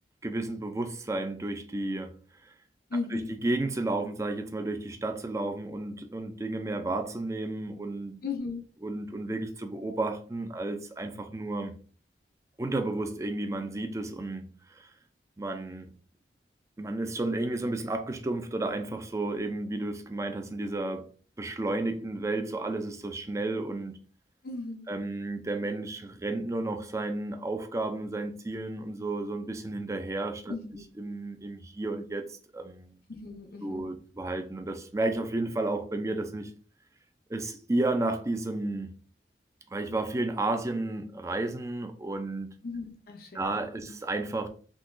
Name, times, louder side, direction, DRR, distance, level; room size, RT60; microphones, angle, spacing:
voice 1, 0.2-2.1 2.4-2.5 3.1-8.2 8.8-11.8 12.6-14.9 15.4-15.9 16.8-21.1 21.4-23.9 24.9-30.6 31.0-32.9 33.6-36.5 37.3-38.9 39.7-42.5 43.3-44.5, right 2 dB, 15° right, 0.4 m, -32 dB
voice 2, 2.9-3.4 8.2-8.6 24.4-24.9 30.5-30.8 33.1-33.9 42.6-43.5, left 3 dB, 55° left, 0.5 m, -36 dB
3.7 x 2.8 x 2.5 m
head